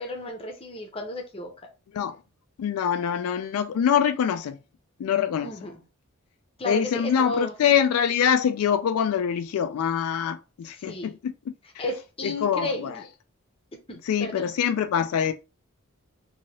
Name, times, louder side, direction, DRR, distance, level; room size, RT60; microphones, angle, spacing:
voice 1, 0.0-1.5 5.4-5.8 6.6-7.5 10.7-11.1 11.8-13.0 13.9-14.5, left 1 dB, 25° left, 0.7 m, -33 dB
voice 2, 2.6-4.6 5.0-5.5 6.7-11.3 11.8-11.9 12.2-12.9 14.1-15.3, left 8 dB, 80° left, 0.3 m, -24 dB
3.0 x 2.7 x 2.8 m
head